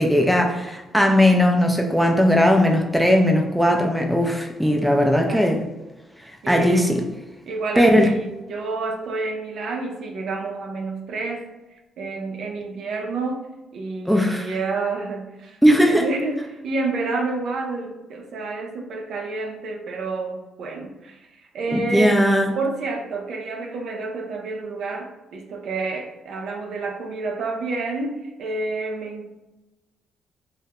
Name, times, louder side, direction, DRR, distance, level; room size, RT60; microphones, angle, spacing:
voice 1, 0.0-5.6 6.5-7.0 7.8-8.1 14.1-14.5 15.6-16.1 21.7-22.5, equal, ahead, 2 dB, 0.3 m, -18 dB
voice 2, 6.4-6.9 7.5-13.5 13.7-22.3 22.6-29.4, right 3 dB, 70° right, 2 dB, 0.4 m, -29 dB
2.2 x 2.0 x 2.8 m, 1.1 s
cardioid pair, 90°, 0 cm